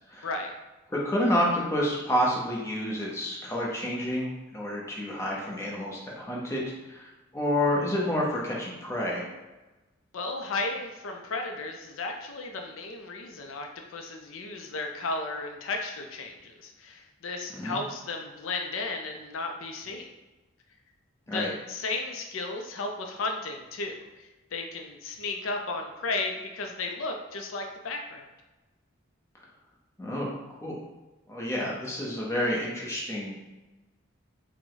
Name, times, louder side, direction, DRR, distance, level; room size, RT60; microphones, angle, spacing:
voice 1, 0.2-0.5 10.1-20.1 21.3-28.3, left 3 dB, 75° left, 3 dB, 0.5 m, -34 dB
voice 2, 0.9-6.6 6.9-9.2 17.5-17.8 21.3-21.5 30.0-30.3 30.6-30.7 31.3-33.4, left 1 dB, 15° left, -4 dB, 0.8 m, -29 dB
4.7 x 2.2 x 3.9 m, 1.1 s
head